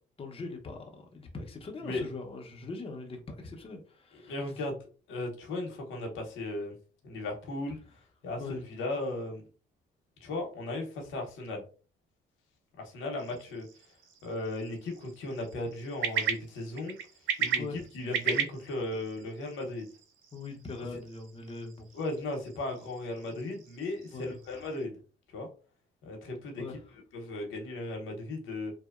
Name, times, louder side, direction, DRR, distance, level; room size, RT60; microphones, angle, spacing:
voice 1, 0.2-4.3 8.4-8.6 17.6-17.8 20.3-21.9 24.1-24.3 26.6-26.7, left 3 dB, 30° left, 2 dB, 0.6 m, -41 dB
voice 2, 4.3-4.8 5.1-6.7 7.0-7.8 8.2-9.4 10.2-11.6 12.8-13.7 14.2-17.0 17.4-19.9 21.9-24.9 25.3-25.5 26.0-26.6 27.1-28.7, left 2 dB, 85° left, 1 dB, 0.8 m, -36 dB
sound 1, 13.2-24.8, right 8 dB, 75° right, 0.4 m, -38 dB
2.8 x 2.0 x 2.3 m, 0.37 s
cardioid pair, 90°, 20 cm